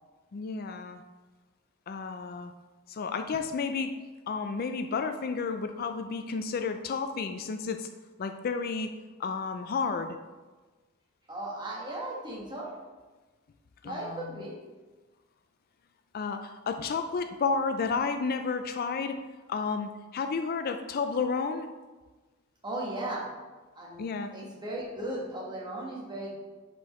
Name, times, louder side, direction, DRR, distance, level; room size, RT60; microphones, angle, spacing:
voice 1, 0.3-1.0 1.9-2.5 2.9-4.0 4.3-7.9 8.2-8.9 9.2-10.2 13.8-14.4 16.1-19.2 19.5-21.7 24.0-24.3, left 5 dB, 45° left, 7 dB, 0.4 m, -31 dB
voice 2, 11.3-12.7 13.8-14.6 22.6-23.3 23.7-24.0 24.3-26.4, right 1 dB, 20° right, -3 dB, 1.5 m, -36 dB
10.5 x 4.6 x 3.1 m, 1.3 s
head